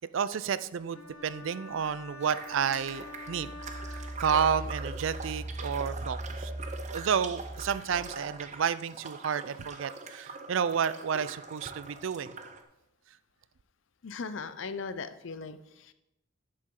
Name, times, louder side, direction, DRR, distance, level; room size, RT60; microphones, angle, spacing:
voice 1, 0.1-3.5 3.9-6.5 6.9-12.3, right 7 dB, 65° right, 16 dB, 0.4 m, -31 dB
sound 1, 0.9-4.8, left 3 dB, 85° left, 1.3 m, -47 dB
sound 2, 2.2-12.6, right 4 dB, 35° right, 0.7 m, -44 dB
Engine, 2.4-8.3, right 1 dB, 15° right, 3.3 m, -40 dB
voice 2, 14.0-15.9, left 4 dB, 65° left, 13 dB, 0.6 m, -38 dB
10.5 x 7.6 x 3.8 m, 0.91 s
head